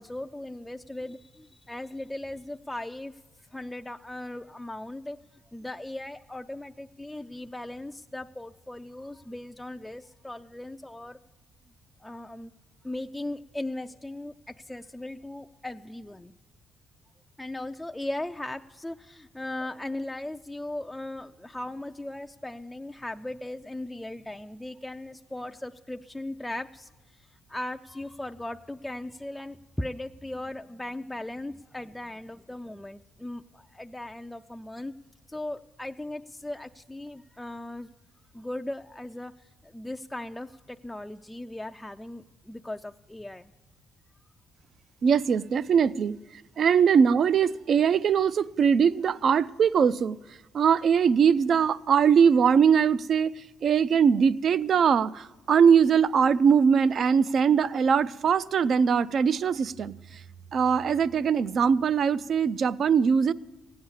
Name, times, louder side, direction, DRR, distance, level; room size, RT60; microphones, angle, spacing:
voice 1, 0.0-3.1 3.5-5.2 5.5-11.2 12.0-12.5 12.8-16.3 17.4-34.9 35.3-37.9 38.3-39.3 39.6-43.5, left 1 dB, 10° left, 0.4 m, -38 dB
voice 2, 45.0-46.2 46.6-50.2 50.5-53.3 53.6-59.9 60.5-63.3, right 7 dB, 55° right, 0.4 m, -21 dB
16.0 x 9.6 x 7.2 m
cardioid pair, 90°, 0 cm